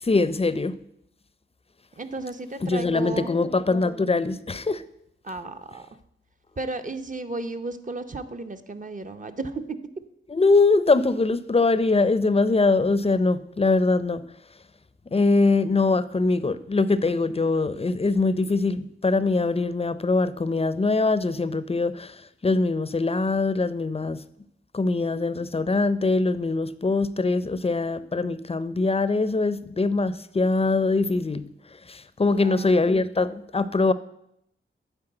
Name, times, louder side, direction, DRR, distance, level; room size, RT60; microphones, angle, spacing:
voice 1, 0.0-0.7 2.6-4.8 10.3-14.2 15.1-24.2 24.7-31.4 31.7-33.9, left 3 dB, 30° left, 15 dB, 0.6 m, -23 dB
voice 2, 2.0-3.3 5.2-5.9 6.6-9.6 32.3-32.9, right 3 dB, 40° right, 8 dB, 0.8 m, -34 dB
9.7 x 4.6 x 7.8 m, 0.76 s
wide cardioid pair, 65°, 21 cm